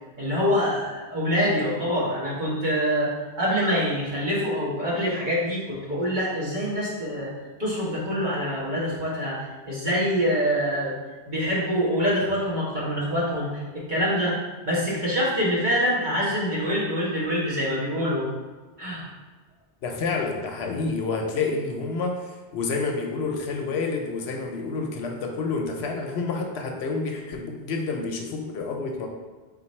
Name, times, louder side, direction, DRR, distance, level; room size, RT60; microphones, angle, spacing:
voice 1, 0.2-7.3 7.6-10.9 11.3-14.4 14.6-18.3 18.8-19.1, equal, 45° right, -7 dB, 1.2 m, -25 dB
voice 2, 19.8-29.1, left 4 dB, 75° left, 2 dB, 0.8 m, -29 dB
3.8 x 2.5 x 4.2 m, 1.3 s
omnidirectional pair, 1.1 m